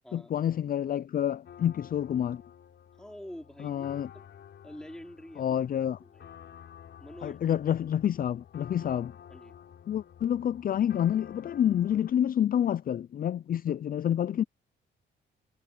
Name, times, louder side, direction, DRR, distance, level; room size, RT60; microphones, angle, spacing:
voice 1, 0.1-2.4 3.6-4.1 5.4-6.0 7.2-9.1 9.9-14.4, left 10 dB, 45° left, 0.5 m, -28 dB
sound 1, 1.4-12.1, left 9 dB, 60° left, 6.6 m, -51 dB
voice 2, 2.9-3.9 4.1-4.3 4.6-5.6 6.0-6.3 7.0-7.6 8.8-9.6, equal, 5° left, 3.8 m, -47 dB
cardioid pair, 90°, 20 cm